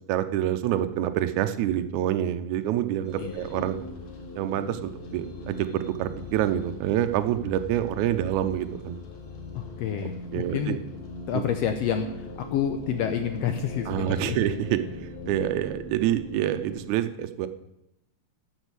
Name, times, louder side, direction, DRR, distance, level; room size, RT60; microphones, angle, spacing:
voice 1, 0.1-3.8 4.4-9.0 10.0-10.8 11.3-11.4 13.9-17.5, right 11 dB, 75° right, 9 dB, 2.0 m, -27 dB
sound 1, 3.0-16.8, left 1 dB, 55° left, 2.9 m, -40 dB
voice 2, 9.5-10.8 11.3-14.4, left 8 dB, 85° left, 7 dB, 1.4 m, -29 dB
12.5 x 7.3 x 6.8 m, 0.85 s
omnidirectional pair, 3.8 m